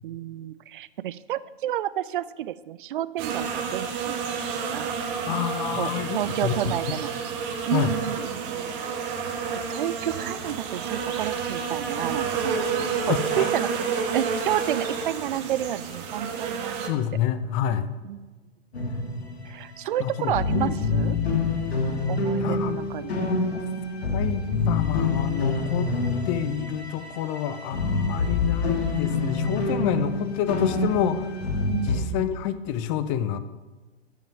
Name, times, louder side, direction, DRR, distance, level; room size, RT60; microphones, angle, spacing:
voice 1, 0.0-4.3 4.7-5.0 5.8-7.1 7.7-8.8 9.2-9.3 9.7-12.7 13.1-13.8 14.1-16.9 18.0-18.3 19.5-21.2 22.1-23.1 28.1-28.3 31.7-32.3, right 12 dB, 55° right, 17 dB, 0.6 m, -30 dB
sound 1, 3.2-16.9, right 6 dB, 35° right, 1.6 m, -30 dB
voice 2, 5.3-6.5 7.7-7.9 13.1-13.5 16.8-17.9 20.0-20.8 22.4-22.8 23.1-23.6 24.1-25.9 26.3-31.3 31.8-33.4, left 10 dB, 30° left, 12 dB, 0.7 m, -28 dB
sound 2, 18.7-19.7 20.0-20.1 20.2-32.0, left 3 dB, 80° left, 2.1 m, -27 dB
14.0 x 5.8 x 5.9 m, 1.2 s
hypercardioid pair, 120°, 31 cm